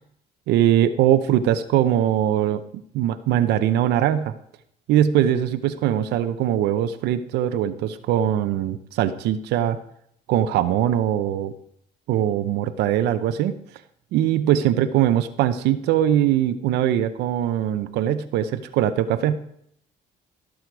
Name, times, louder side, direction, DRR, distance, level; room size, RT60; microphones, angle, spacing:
voice 1, 0.5-2.6 2.9-4.3 4.9-9.8 10.3-11.5 12.1-13.5 14.1-19.4, right 11 dB, 85° right, 10 dB, 0.7 m, -21 dB
15.5 x 6.5 x 4.7 m, 0.71 s
cardioid pair, 110°, 17 cm